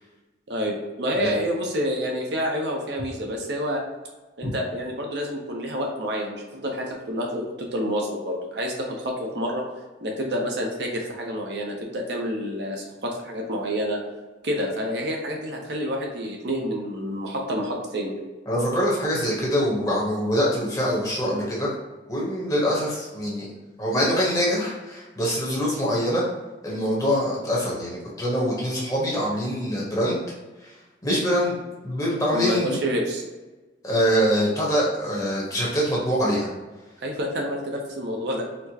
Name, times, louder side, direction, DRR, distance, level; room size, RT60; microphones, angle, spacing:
voice 1, 0.5-3.8 4.4-9.6 10.0-14.0 14.4-18.1 32.3-33.2 37.0-38.5, equal, 65° right, 0 dB, 0.7 m, -28 dB
voice 2, 18.5-21.7 22.1-23.5 23.8-26.2 26.6-30.2 30.6-31.6 31.8-32.8 33.8-36.5, equal, 20° left, -5 dB, 0.9 m, -24 dB
4.2 x 2.1 x 2.8 m, 1.2 s
head